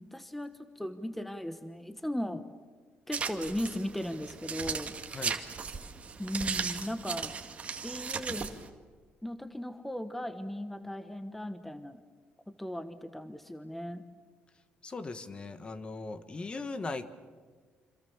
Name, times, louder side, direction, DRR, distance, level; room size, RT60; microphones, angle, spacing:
voice 1, 0.0-2.5 3.1-4.9 6.2-7.3 7.8-8.5 9.2-12.0 12.5-14.0, equal, 5° left, 10 dB, 1.1 m, -37 dB
sound 1, 3.1-8.7, right 5 dB, 35° right, 1.9 m, -37 dB
voice 2, 14.8-17.1, left 3 dB, 25° left, 12 dB, 1.4 m, -39 dB
26.5 x 26.5 x 7.2 m, 1.5 s
cardioid pair, 120°, 4 cm